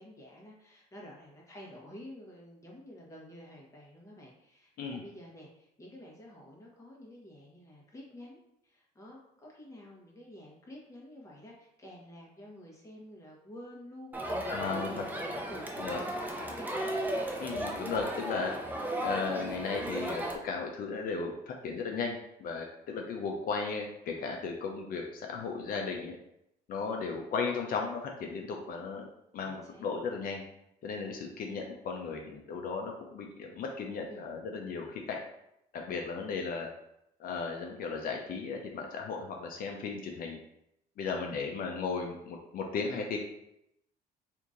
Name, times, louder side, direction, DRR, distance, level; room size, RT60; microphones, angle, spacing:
voice 1, 0.0-17.0 27.0-27.2 29.4-29.9 34.1-34.3 41.2-41.5, left 1 dB, 20° left, -3 dB, 1.2 m, -50 dB
Crowd, 14.1-20.4, right 1 dB, 10° right, 0.5 m, -35 dB
voice 2, 14.5-15.0 15.8-16.0 17.4-18.5 19.0-26.2 26.7-30.4 30.8-35.2 35.7-36.7 37.2-40.4 41.0-43.2, left 4 dB, 60° left, 1 dB, 0.6 m, -36 dB
2.9 x 2.6 x 3.7 m, 0.79 s
cardioid pair, 110°, 17 cm